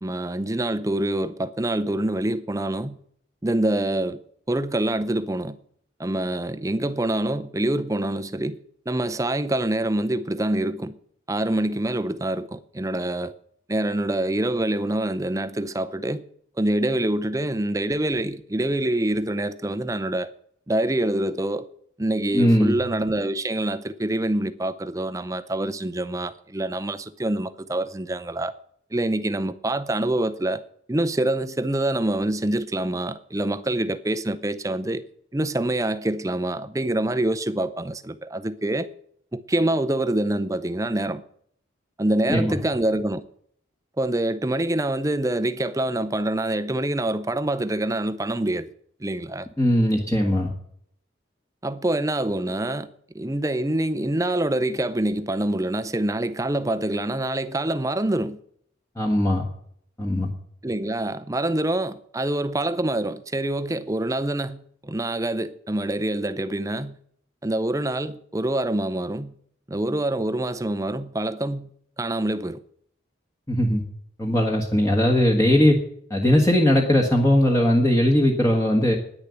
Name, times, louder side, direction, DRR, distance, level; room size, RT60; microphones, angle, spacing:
voice 1, 0.0-3.0 3.4-4.2 4.5-5.6 6.0-8.6 8.9-11.0 11.3-13.3 13.7-16.2 16.6-20.3 20.7-21.7 22.0-28.5 28.9-30.6 30.9-35.1 35.3-38.9 39.3-41.2 42.0-43.3 44.0-48.7 49.0-49.5 51.6-52.9 53.1-58.4 60.6-67.0 67.4-69.3 69.7-71.7 72.0-72.6, right 1 dB, 15° right, 0.6 m, -25 dB
voice 2, 22.3-22.8 42.3-42.6 49.6-50.5 59.0-59.4 60.0-60.3 73.5-73.8 74.2-75.7 76.1-79.0, left 1 dB, 15° left, 1.5 m, -19 dB
10.5 x 10.0 x 8.2 m
head